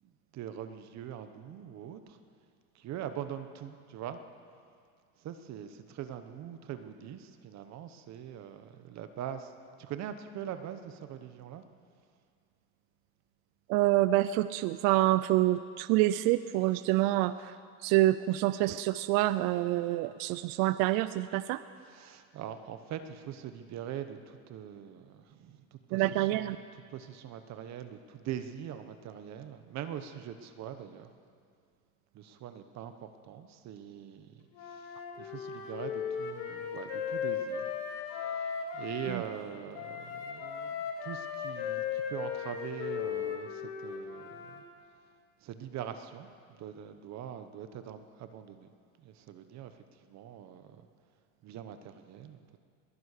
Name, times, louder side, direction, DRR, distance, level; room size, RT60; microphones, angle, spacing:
voice 1, 0.0-2.2 2.7-4.2 5.2-9.5 9.8-11.6 21.8-31.1 32.1-37.7 38.0-44.6 45.4-48.7 49.0-50.9 51.4-52.6, right 9 dB, 50° right, 9 dB, 1.0 m, -43 dB
voice 2, 13.7-17.5 17.8-21.6 25.9-26.6, right 16 dB, 65° right, 14 dB, 0.5 m, -27 dB
Wind instrument woodwind instrument, 34.5-39.2 39.7-44.6, left 7 dB, 65° left, 2.5 m, -37 dB
21.0 x 10.5 x 6.6 m, 2.2 s
cardioid pair, 135°, 36 cm